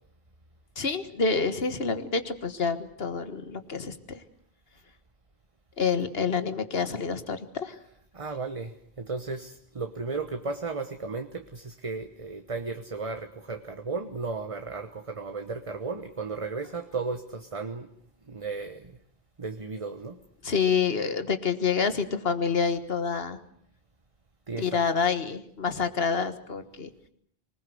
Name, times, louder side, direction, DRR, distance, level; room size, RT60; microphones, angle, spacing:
voice 1, 0.8-4.0 5.8-7.8 20.4-23.4 24.6-26.9, left 5 dB, 70° left, 10 dB, 1.8 m, -27 dB
voice 2, 8.1-17.9 18.3-18.9 19.4-20.2 24.5-24.8, right 4 dB, 35° right, 7 dB, 1.2 m, -35 dB
25.0 x 20.0 x 7.9 m, 0.62 s
omnidirectional pair, 1.0 m